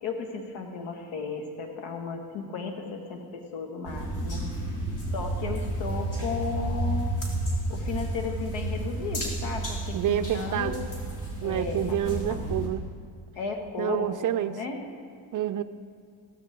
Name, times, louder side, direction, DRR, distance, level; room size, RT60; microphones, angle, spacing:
voice 1, 0.0-4.4 5.1-7.1 7.7-10.8 11.4-12.4 13.4-14.8, left 5 dB, 75° left, 3 dB, 2.0 m, -35 dB
sound 1, 3.8-12.7, right 1 dB, 40° left, 3.6 m, -31 dB
voice 2, 9.9-10.8 11.4-12.9 13.8-14.6 15.3-15.6, right 11 dB, 40° right, 12 dB, 0.5 m, -28 dB
16.0 x 13.0 x 3.7 m, 2.4 s
cardioid pair, 100°, 49 cm